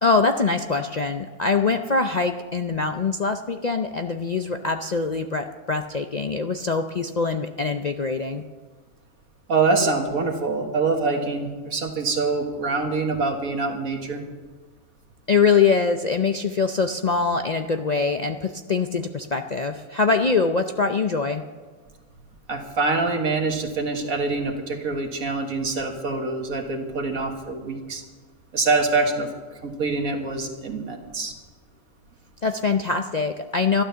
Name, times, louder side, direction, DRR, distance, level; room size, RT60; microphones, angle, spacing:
voice 1, 0.0-8.4 15.3-21.4 32.4-33.8, left 4 dB, 55° left, 6 dB, 0.4 m, -23 dB
voice 2, 9.5-14.2 22.5-28.0 28.5-29.3 29.6-31.3, right 3 dB, 70° right, 3 dB, 2.0 m, -25 dB
12.5 x 12.0 x 6.8 m, 1.4 s
omnidirectional pair, 1.5 m